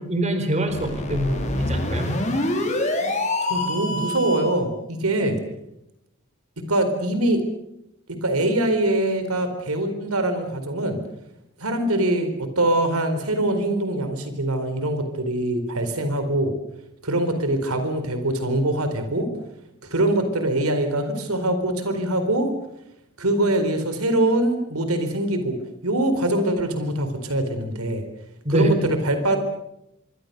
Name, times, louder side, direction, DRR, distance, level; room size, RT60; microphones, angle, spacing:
voice 1, 0.0-2.1 28.4-28.7, right 1 dB, 30° right, 7 dB, 4.3 m, -24 dB
sound 1, 0.7-4.6, left 1 dB, 35° left, 5.2 m, -26 dB
voice 2, 3.5-5.4 6.7-7.4 8.2-11.0 11.6-16.5 17.0-19.3 19.8-22.5 23.2-25.6 25.8-28.0 28.5-29.4, right 1 dB, 90° right, 8 dB, 4.2 m, -23 dB
25.5 x 24.5 x 6.9 m, 0.84 s
head